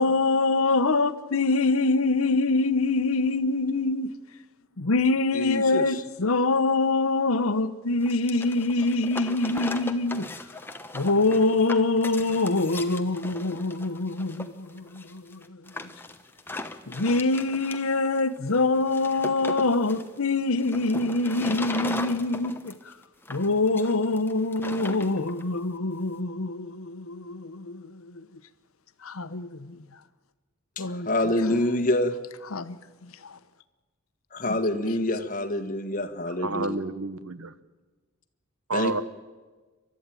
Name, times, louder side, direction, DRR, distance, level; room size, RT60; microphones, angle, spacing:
voice 1, 0.0-4.1 4.8-10.3 10.9-15.6 16.9-22.9 23.3-28.2 29.0-29.8 30.8-31.1 32.5-32.8 33.0-33.4 34.5-34.6, left 3 dB, 75° left, 1.0 m, -25 dB
voice 2, 5.3-5.8 30.8-32.1 34.3-36.7 38.7-38.9, left 1 dB, 40° left, 1.6 m, -26 dB
sound 1, 8.0-25.4, left 2 dB, 10° left, 1.0 m, -38 dB
voice 3, 36.3-37.5 38.7-39.0, right 3 dB, 80° right, 1.1 m, -30 dB
29.0 x 12.5 x 9.2 m
head